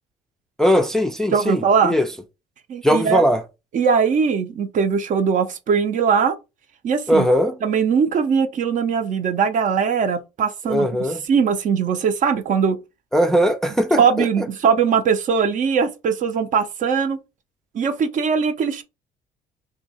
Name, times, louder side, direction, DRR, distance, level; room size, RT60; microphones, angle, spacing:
voice 1, 0.6-2.1 2.8-3.4 7.1-7.6 10.7-11.2 13.1-14.5, equal, 5° left, 0.4 m, -19 dB
voice 2, 1.3-1.9 2.7-3.2 3.7-6.4 6.8-7.3 7.6-10.9 11.3-12.8 14.0-17.2 17.7-18.8, right 6 dB, 50° right, 0.6 m, -20 dB
2.8 x 2.7 x 4.1 m
cardioid pair, 110°, 17 cm